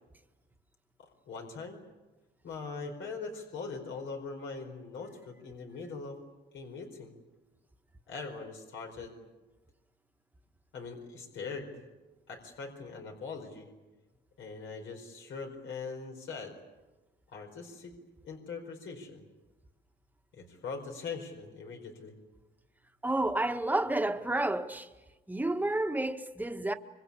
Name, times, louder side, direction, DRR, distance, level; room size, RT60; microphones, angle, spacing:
voice 1, 1.0-1.8 2.4-6.2 6.5-7.1 8.1-9.1 10.7-11.8 12.3-13.7 14.4-16.6 17.3-17.9 18.2-19.3 20.3-22.1, left 4 dB, 75° left, 4.8 m, -41 dB
voice 2, 23.0-24.9 25.3-26.7, right 2 dB, 10° right, 1.6 m, -30 dB
25.5 x 24.0 x 8.6 m
cardioid pair, 90°, 20 cm